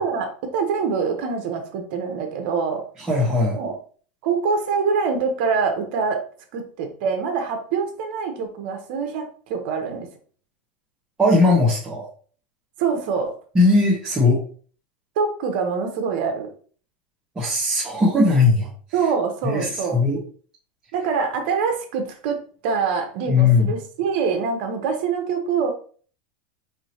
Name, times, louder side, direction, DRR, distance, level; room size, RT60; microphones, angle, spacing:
voice 1, 0.0-2.8 3.6-3.7 4.2-6.2 6.5-10.1 12.8-13.3 15.2-16.5 18.9-20.0 20.9-25.7, right 5 dB, 60° right, 5 dB, 1.0 m, -25 dB
voice 2, 3.1-3.6 11.2-12.0 13.5-14.4 17.3-18.7 19.4-20.2 23.3-23.7, left 3 dB, 15° right, -9 dB, 1.3 m, -18 dB
4.8 x 2.8 x 2.9 m, 0.43 s
supercardioid pair, 125°, 6 cm